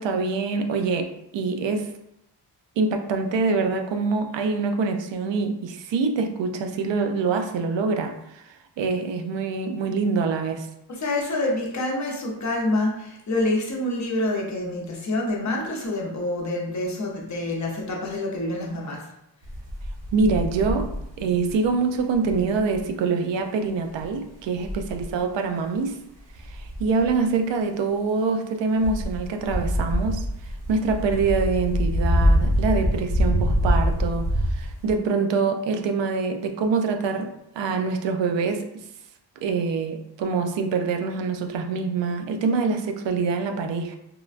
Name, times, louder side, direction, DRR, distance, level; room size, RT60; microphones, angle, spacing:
voice 1, 0.0-1.9 2.8-8.4 8.8-10.7 20.1-20.9 21.2-26.0 26.5-30.3 30.7-38.7 39.4-44.0, right 4 dB, 85° right, 6 dB, 0.5 m, -25 dB
voice 2, 10.9-19.0, left 2 dB, 40° left, -1 dB, 0.7 m, -27 dB
sound 1, 19.4-21.7 22.1-22.9 24.0-24.1 24.6-25.2 26.4-27.2 28.8-34.9, equal, 35° right, 1.0 m, -24 dB
3.5 x 2.2 x 2.5 m, 0.83 s
wide cardioid pair, 120°, 43 cm